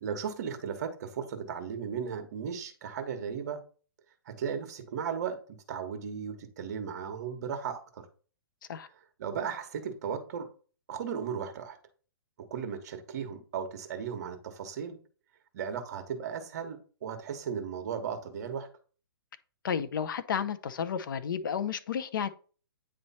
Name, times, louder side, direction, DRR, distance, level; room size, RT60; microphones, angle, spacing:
voice 1, 0.0-3.6 4.3-5.4 5.7-8.1 9.2-10.5 10.9-11.8 12.5-15.0 15.5-18.7, right 7 dB, 45° right, 1.2 m, -36 dB
voice 2, 19.6-22.3, left 7 dB, 60° left, 0.7 m, -32 dB
9.2 x 3.2 x 4.2 m
hypercardioid pair, 165°, 13 cm